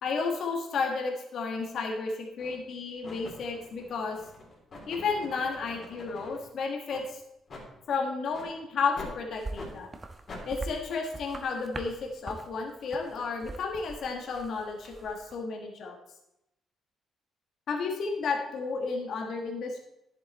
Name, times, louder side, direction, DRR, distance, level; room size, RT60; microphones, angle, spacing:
voice 1, 0.0-4.2 4.9-7.2 7.9-9.9 10.5-15.9 17.7-19.8, left 4 dB, 65° left, 1 dB, 1.4 m, -32 dB
sound 1, 1.6-1.7 2.4-2.7 3.0-6.4 6.9-7.1 7.5-7.7 8.3-8.5 9.0-9.2 9.5-9.7 10.3-10.5, left 2 dB, 45° left, 2.9 m, -45 dB
sound 2, 9.4-15.3, right 2 dB, 25° right, 1.0 m, -43 dB
10.5 x 7.7 x 4.1 m, 0.86 s
cardioid pair, 90°, 0 cm